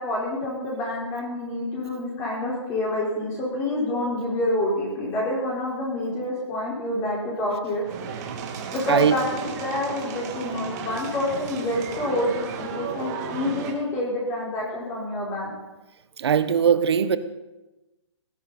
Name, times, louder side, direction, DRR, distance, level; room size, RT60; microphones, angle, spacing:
voice 1, 0.0-7.8 8.7-15.5, left 1 dB, 20° left, -5 dB, 5.1 m, -27 dB
sound 1, 7.8-13.7, right 6 dB, 35° right, 2.7 m, -34 dB
voice 2, 8.9-9.2 16.2-17.2, right 8 dB, 60° right, 13 dB, 1.3 m, -20 dB
19.0 x 16.0 x 4.4 m, 1.1 s
hypercardioid pair, 150°, 15 cm